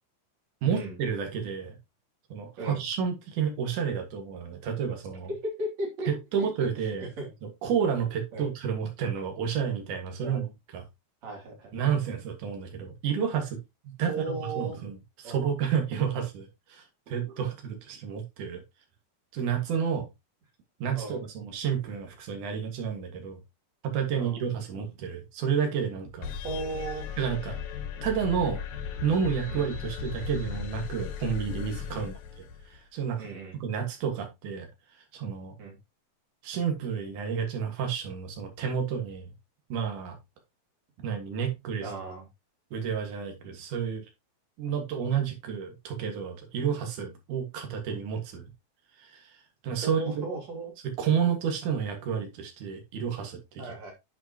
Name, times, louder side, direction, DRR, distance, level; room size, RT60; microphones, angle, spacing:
voice 1, 0.6-1.8 2.3-5.3 6.1-7.1 7.4-10.5 10.7-10.8 11.7-13.6 13.8-18.6 19.3-20.1 20.8-23.4 23.8-26.3 27.2-27.6 28.0-28.6 29.0-33.3 33.6-34.7 35.1-35.5 36.4-39.3 39.7-40.2 41.0-41.9 42.7-44.0 44.6-48.4 49.0-49.4 49.6-50.2 50.8-53.6, right 7 dB, 75° right, 3.2 m, -30 dB
voice 2, 5.3-6.1 6.4-6.7 7.0-7.3 8.3-8.5 10.2-10.5 11.2-11.7 14.1-14.8 15.2-15.5 20.9-21.2 24.1-24.4 26.4-27.1 29.5-29.7 31.9-32.1 33.2-33.6 35.6-35.8 41.8-42.3 49.8-50.7 53.6-53.9, right 2 dB, 55° right, 3.9 m, -36 dB
sound 1, 26.2-32.8, left 7 dB, 70° left, 2.4 m, -37 dB
9.5 x 5.9 x 2.9 m
omnidirectional pair, 3.6 m